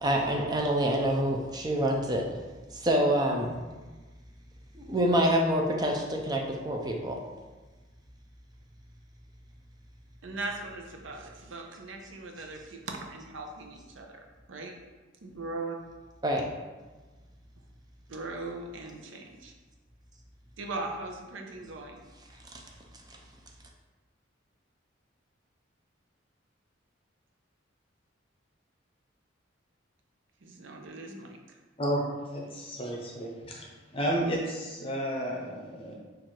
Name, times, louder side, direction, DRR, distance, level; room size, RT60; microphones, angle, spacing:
voice 1, 0.0-2.2 2.7-3.6 4.7-7.2 16.2-16.5 22.5-22.6, right 1 dB, 20° right, 1 dB, 0.5 m, -26 dB
voice 2, 10.2-14.2 14.5-14.7 15.2-15.8 18.1-19.5 20.6-22.0 30.4-31.6, right 2 dB, 75° right, 2 dB, 0.6 m, -39 dB
voice 3, 31.8-33.7 33.9-35.9, right 1 dB, 30° left, -2 dB, 0.8 m, -32 dB
4.4 x 2.5 x 4.5 m, 1.3 s
head